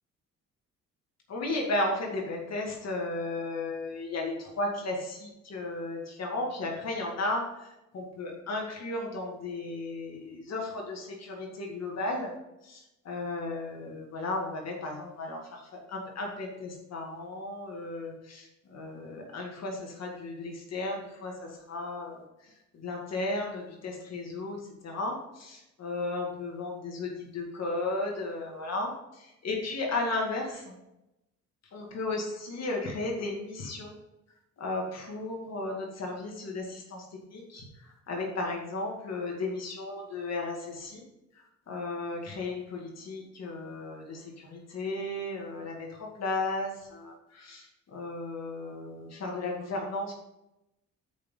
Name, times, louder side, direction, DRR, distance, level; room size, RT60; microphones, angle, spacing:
voice 1, 1.3-1.9 2.3-12.3 12.6-30.7 31.7-33.9 34.6-37.0 37.3-41.0 41.7-50.1, left 2 dB, 60° left, 0 dB, 2.1 m, -35 dB
6.4 x 5.5 x 5.6 m, 0.91 s
cardioid pair, 90°, 30 cm